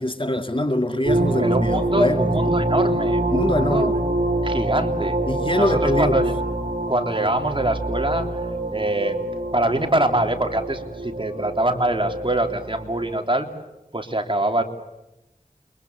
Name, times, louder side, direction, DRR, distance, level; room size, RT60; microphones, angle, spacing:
voice 1, 0.0-2.5 3.3-4.0 5.3-6.2, left 1 dB, 35° left, 2.1 m, -23 dB
sound 1, 1.0-13.2, right 1 dB, 60° right, 5.5 m, -25 dB
voice 2, 1.4-3.9 4.4-5.2 5.5-6.3 6.9-8.3 8.7-9.2 9.5-13.5 13.9-14.6, right 1 dB, 35° right, 3.5 m, -24 dB
29.5 x 24.0 x 8.0 m
wide cardioid pair, 50°, 15 cm